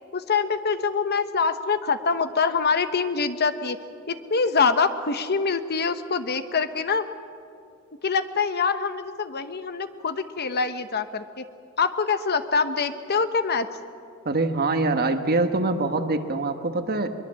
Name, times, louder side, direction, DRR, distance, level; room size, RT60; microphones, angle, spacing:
voice 1, 0.1-3.8 4.1-7.1 8.0-11.4 11.8-13.7, left 5 dB, 50° left, 10 dB, 1.0 m, -25 dB
voice 2, 14.2-17.1, right 2 dB, 45° right, 7 dB, 1.4 m, -24 dB
22.5 x 22.5 x 7.6 m, 2.4 s
head